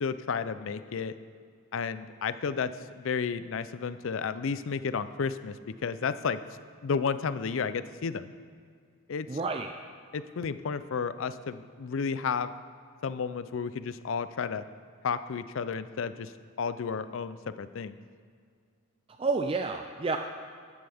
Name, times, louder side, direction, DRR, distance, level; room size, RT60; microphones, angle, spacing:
voice 1, 0.0-1.1 1.7-5.6 5.8-6.4 6.8-8.2 9.1-9.3 10.1-12.5 13.0-14.6 15.0-16.3 16.6-18.0, left 5 dB, 65° left, 13 dB, 0.4 m, -32 dB
voice 2, 9.3-9.7 19.1-20.2, right 4 dB, 25° right, 5 dB, 0.4 m, -30 dB
12.5 x 11.0 x 3.5 m, 2.1 s
head